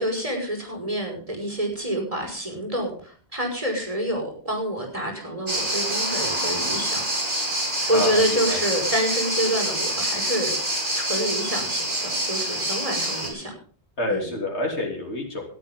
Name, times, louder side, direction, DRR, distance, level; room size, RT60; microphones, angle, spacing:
voice 1, 0.0-7.0 7.9-13.5 14.1-14.3, equal, 30° right, 3 dB, 5.6 m, -27 dB
sound 1, 5.5-13.3, right 1 dB, 50° right, 4.7 m, -26 dB
voice 2, 7.9-8.6 14.0-15.4, left 1 dB, 75° left, 0 dB, 3.5 m, -28 dB
19.5 x 12.5 x 3.7 m, 0.43 s
omnidirectional pair, 1.1 m